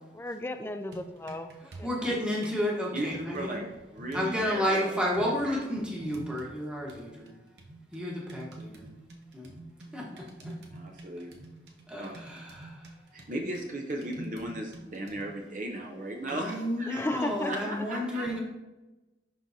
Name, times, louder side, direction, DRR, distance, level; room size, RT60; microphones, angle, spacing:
voice 1, 0.1-2.2 16.9-17.8, left 1 dB, 15° left, 8 dB, 0.3 m, -35 dB
sound 1, 0.7-2.6 3.1-4.7 5.1-6.6 6.9-15.4, right 2 dB, 70° right, 0.9 m, -47 dB
voice 2, 1.8-3.6 4.1-7.3 7.9-8.9 9.3-9.5 9.9-10.6 11.9-13.0 16.3-18.4, equal, 5° right, -4 dB, 1.2 m, -31 dB
voice 3, 2.9-4.9 5.5-5.6 10.7-11.3 12.0-12.1 13.1-16.9 17.5-18.3, right 1 dB, 45° right, 1 dB, 0.7 m, -36 dB
11.0 x 3.8 x 2.7 m, 1.1 s
head